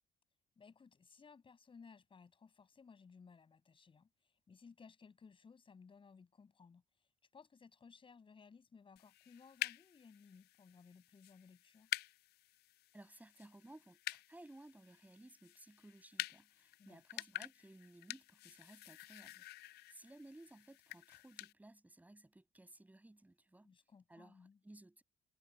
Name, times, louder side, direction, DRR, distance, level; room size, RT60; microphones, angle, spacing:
voice 1, 0.6-11.9 16.8-17.2 23.6-24.6, left 5 dB, 30° left, 6.3 m, -61 dB
sound 1, 9.0-21.5, left 16 dB, 70° left, 0.5 m, -48 dB
voice 2, 12.9-23.7 24.1-25.0, right 1 dB, 10° right, 6.0 m, -59 dB
cardioid pair, 110°, 17 cm